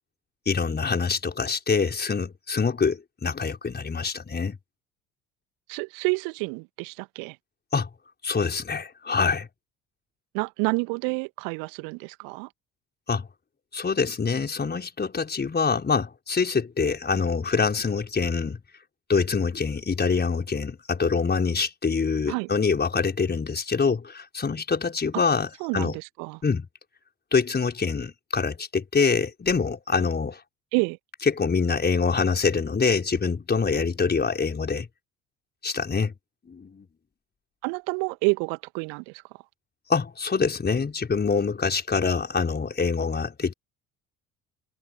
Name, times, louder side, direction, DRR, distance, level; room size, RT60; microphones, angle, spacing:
voice 1, 0.5-4.6 7.7-7.9 8.2-9.5 13.1-13.3 13.7-18.6 19.1-26.0 26.4-26.7 27.3-30.4 31.4-34.9 35.6-36.1 36.5-36.9 39.9-43.5, left 5 dB, 25° left, 5.7 m, -25 dB
voice 2, 5.7-7.4 10.3-12.5 22.3-22.5 25.6-26.4 30.7-31.0 37.6-39.2, right 36 dB, 60° right, 1.9 m, -29 dB
figure-of-eight pair, 55°, 40 cm